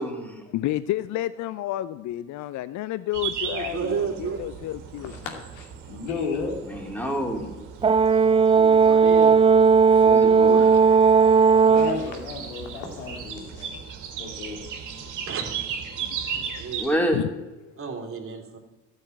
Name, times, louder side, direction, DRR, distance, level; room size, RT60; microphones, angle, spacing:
voice 1, 0.0-0.5 6.6-7.5 10.0-10.8 11.1-11.2 16.8-17.2, equal, 5° left, 1 dB, 3.6 m, -28 dB
voice 2, 0.5-5.1 15.0-15.3 15.9-16.6 17.1-17.3 17.6-17.8, left 14 dB, 55° left, 15 dB, 0.6 m, -31 dB
sound 1, 3.1-16.9, right 7 dB, 65° right, 2.1 m, -37 dB
voice 3, 3.4-4.4 8.5-9.4 9.9-10.1 11.5-12.2 15.3-15.8 16.4-17.1 17.8-18.6, right 6 dB, 40° right, 2 dB, 2.9 m, -33 dB
voice 4, 5.0-6.5 10.5-10.8 11.7-13.8 14.2-14.6, left 5 dB, 85° left, 3 dB, 2.5 m, -33 dB
Brass instrument, 7.8-12.0, right 5 dB, 15° right, 0.4 m, -16 dB
13.0 x 6.7 x 9.3 m, 1.1 s
hypercardioid pair, 65°, 34 cm